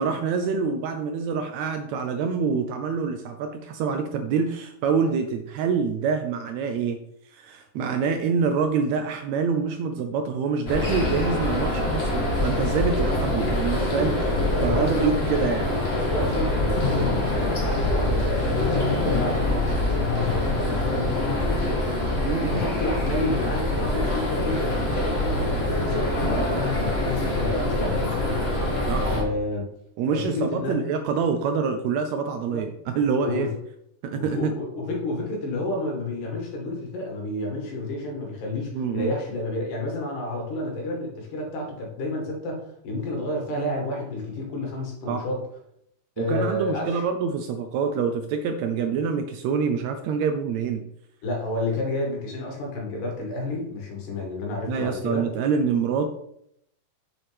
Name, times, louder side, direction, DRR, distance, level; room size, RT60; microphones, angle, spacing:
voice 1, 0.0-7.0 7.3-14.2 14.6-15.7 22.2-22.7 28.9-29.1 30.0-33.5 34.0-34.6 38.7-39.1 45.1-45.2 46.2-50.9 54.7-56.1, right 5 dB, 80° right, 6 dB, 1.6 m, -26 dB
sound 1, 10.7-29.2, left 1 dB, 30° left, 1.3 m, -25 dB
voice 2, 14.6-15.2 16.0-21.8 22.1-28.6 29.0-29.7 30.1-30.8 32.5-32.6 33.2-33.6 34.2-45.4 46.2-47.0 51.2-55.2, left 2 dB, 90° left, 0 dB, 3.6 m, -30 dB
7.4 x 6.9 x 3.4 m, 0.74 s
omnidirectional pair, 3.6 m